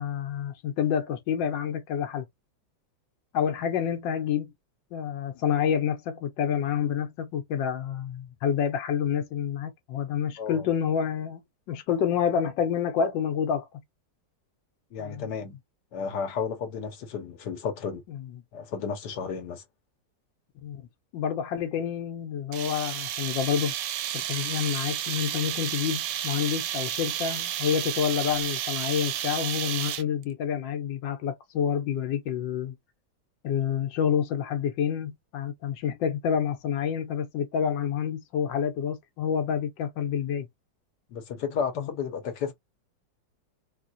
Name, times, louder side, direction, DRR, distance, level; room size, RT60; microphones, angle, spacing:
voice 1, 0.0-2.3 3.3-4.5 4.9-11.4 11.7-13.8 15.0-15.3 18.1-18.4 20.6-20.9 21.1-23.7 24.1-32.8 33.4-40.5 41.8-41.9, left 8 dB, 90° left, 1.5 m, -28 dB
voice 2, 10.4-10.7 14.9-15.6 15.9-18.0 18.5-19.6 41.1-42.5, left 6 dB, 70° left, 1.5 m, -32 dB
sound 1, 22.5-30.2, right 11 dB, 70° right, 1.0 m, -32 dB
3.8 x 2.3 x 2.5 m
omnidirectional pair, 1.9 m